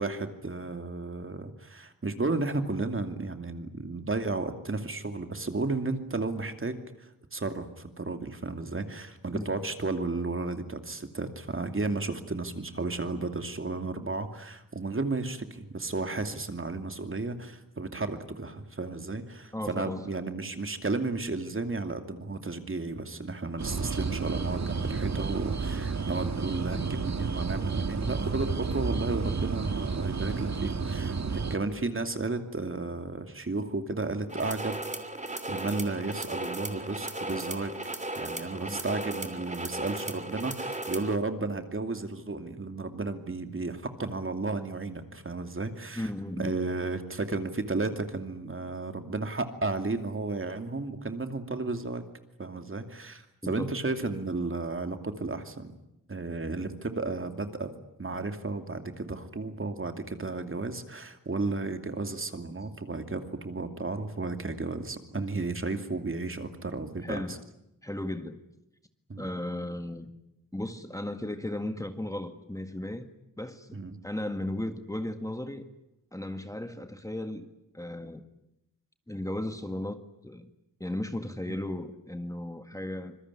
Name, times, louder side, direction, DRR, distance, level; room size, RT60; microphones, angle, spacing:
voice 1, 0.0-34.8 35.5-37.7 38.2-46.1 46.4-52.0 52.4-55.7 56.1-57.7 58.0-67.4 69.1-69.3 73.7-74.0 81.5-81.6, right 3 dB, 40° right, 7 dB, 2.7 m, -33 dB
voice 2, 19.5-20.1 38.7-38.8 46.0-46.6 53.4-53.7 67.0-67.4 67.8-68.4 69.2-70.1 70.5-73.1 73.4-73.7 74.0-75.6 76.1-78.3 79.1-80.5 80.8-83.2, left 1 dB, 10° left, 8 dB, 1.8 m, -35 dB
sound 1, 23.6-31.6, right 4 dB, 55° right, 1.8 m, -31 dB
sound 2, 34.3-41.2, right 2 dB, 20° right, 2.9 m, -36 dB
26.0 x 22.0 x 9.9 m, 0.84 s
wide cardioid pair, 80°, 34 cm